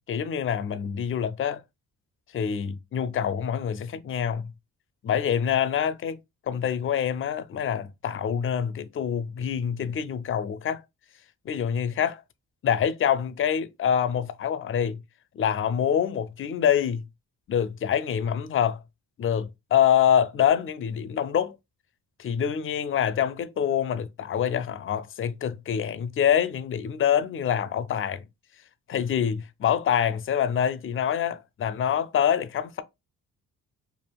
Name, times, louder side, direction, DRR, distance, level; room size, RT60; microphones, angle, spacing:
voice 1, 0.0-1.6 2.3-4.5 5.0-6.2 6.5-10.8 11.5-12.2 12.6-15.0 15.3-17.0 17.5-18.8 19.2-21.6 22.2-28.2 28.9-32.8, left 8 dB, 35° left, 0.4 m, -26 dB
3.4 x 2.4 x 2.3 m
cardioid pair, 65°, 35 cm